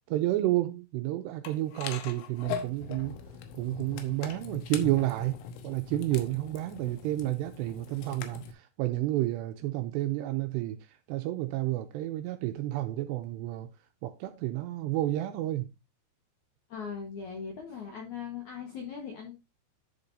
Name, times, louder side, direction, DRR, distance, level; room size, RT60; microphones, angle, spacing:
voice 1, 0.1-3.2 3.5-13.7 14.0-15.7, right 15 dB, 80° right, 2.5 m, -31 dB
sound 1, 1.5-8.5, left 7 dB, 80° left, 3.4 m, -41 dB
voice 2, 16.7-19.4, left 6 dB, 65° left, 1.9 m, -39 dB
11.0 x 6.8 x 2.7 m
omnidirectional pair, 5.4 m